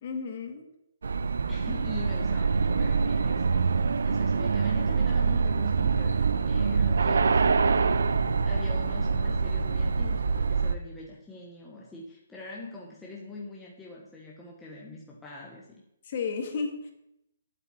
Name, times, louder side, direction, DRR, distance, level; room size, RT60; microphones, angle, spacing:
voice 1, 0.0-0.7 16.0-16.9, left 5 dB, 30° left, 5 dB, 1.8 m, -33 dB
sound 1, 1.0-10.7, right 5 dB, 90° right, 0.8 m, -25 dB
voice 2, 1.5-15.7, left 2 dB, 5° left, -5 dB, 1.2 m, -43 dB
9.0 x 8.3 x 9.4 m, 0.81 s
hypercardioid pair, 180°, 0 cm